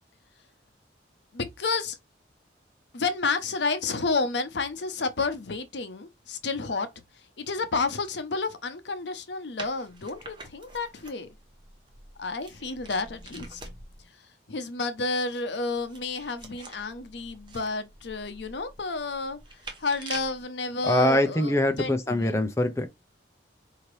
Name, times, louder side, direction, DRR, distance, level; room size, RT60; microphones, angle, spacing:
voice 1, 1.3-2.0 2.9-6.9 7.4-11.3 12.2-13.6 14.5-19.4 19.8-22.4, left 3 dB, 70° left, 0.7 m, -30 dB
sound 1, 9.6-14.1 15.5-20.4, right 3 dB, 25° right, 0.8 m, -45 dB
voice 2, 20.8-22.9, left 1 dB, 15° left, 0.6 m, -23 dB
4.9 x 2.8 x 3.2 m
head